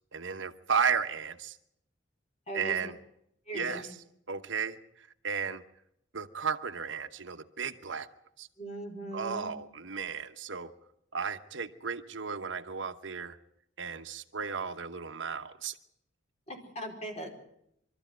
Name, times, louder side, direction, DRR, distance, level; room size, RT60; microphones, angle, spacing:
voice 1, 0.1-1.6 2.5-3.0 3.5-3.9 4.3-5.6 6.1-8.1 8.4-8.5 9.1-10.7 11.1-13.4 13.8-15.8, right 6 dB, 75° right, 9 dB, 1.0 m, -34 dB
voice 2, 2.5-2.8 3.5-3.8 8.6-9.5 16.5-17.3, right 1 dB, 35° left, 3 dB, 4.4 m, -39 dB
23.0 x 13.5 x 9.2 m, 0.77 s
head